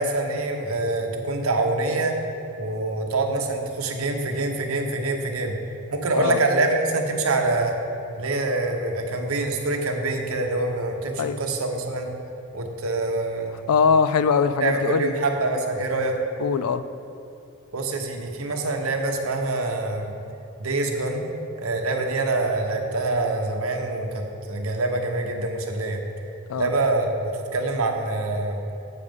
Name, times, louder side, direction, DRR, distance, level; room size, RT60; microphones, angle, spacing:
voice 1, 0.0-2.1 2.6-5.5 5.9-7.7 8.1-12.1 12.5-13.6 14.6-16.2 17.7-20.1 20.6-21.2 21.6-26.0 26.6-28.6, right 2 dB, 75° right, 3 dB, 1.0 m, -25 dB
voice 2, 13.7-15.1 16.4-16.8 26.5-26.7, left 5 dB, 85° left, 13 dB, 0.4 m, -21 dB
8.4 x 6.6 x 5.3 m, 2.8 s
head